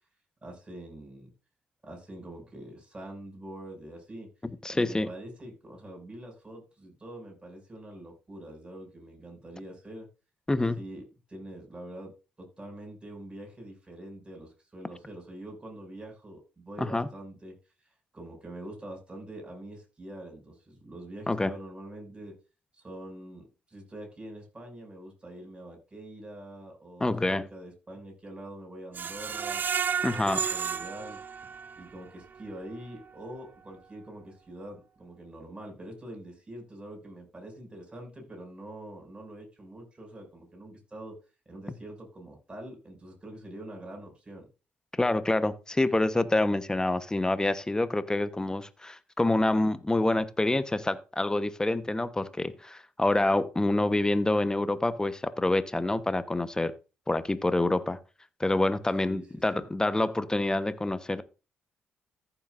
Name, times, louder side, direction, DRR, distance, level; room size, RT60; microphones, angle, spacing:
voice 1, 0.4-1.3 1.8-4.3 4.7-10.1 10.8-12.1 12.4-17.5 18.1-22.4 22.7-29.6 30.1-31.2 31.8-41.2 41.5-44.5 59.1-59.7, right 1 dB, 25° right, 6.2 m, -44 dB
voice 2, 4.6-5.1 10.5-10.8 16.8-17.1 21.3-21.5 27.0-27.5 30.0-30.4 45.0-56.7 57.1-58.0 58.4-61.2, left 2 dB, 15° left, 1.0 m, -27 dB
Screech, 28.9-31.9 32.4-32.5 32.9-33.0, right 6 dB, 45° right, 0.4 m, -32 dB
14.5 x 7.1 x 2.5 m
hypercardioid pair, 50°, 4 cm